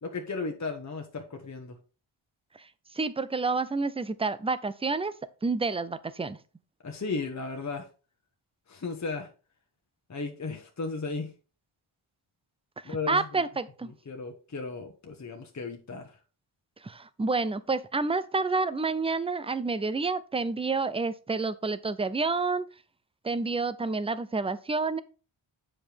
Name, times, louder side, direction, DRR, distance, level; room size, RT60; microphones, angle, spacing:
voice 1, 0.0-1.8 6.8-7.9 8.7-9.3 10.1-11.3 12.8-13.4 13.9-16.2, left 4 dB, 35° left, 1.1 m, -35 dB
voice 2, 2.9-5.1 5.4-6.4 12.9-13.9 16.8-22.7 23.2-25.0, right 3 dB, 15° right, 0.4 m, -29 dB
7.4 x 5.0 x 3.4 m
cardioid pair, 70°, 50 cm